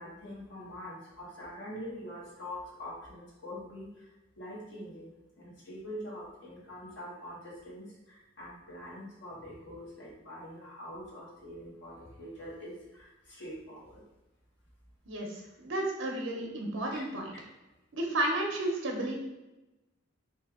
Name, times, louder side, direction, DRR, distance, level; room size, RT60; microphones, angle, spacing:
voice 1, 0.0-4.1 4.4-5.1 5.4-14.0 16.9-17.0, equal, 65° left, -6 dB, 1.1 m, -44 dB
voice 2, 15.1-17.3 17.9-19.2, right 1 dB, 75° right, 0 dB, 0.8 m, -32 dB
3.2 x 2.9 x 3.6 m, 0.98 s
head